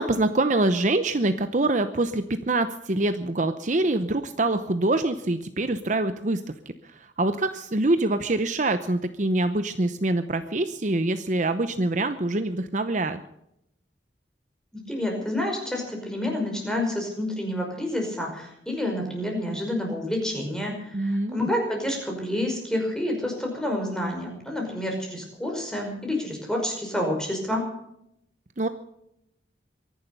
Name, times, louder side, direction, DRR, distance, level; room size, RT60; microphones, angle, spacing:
voice 1, 0.0-6.4 6.8-13.2 20.9-21.5 28.6-28.7, right 2 dB, 40° right, 10 dB, 0.8 m, -25 dB
voice 2, 14.9-27.6, left 1 dB, 5° left, 1 dB, 5.3 m, -29 dB
23.5 x 11.5 x 5.4 m, 0.78 s
head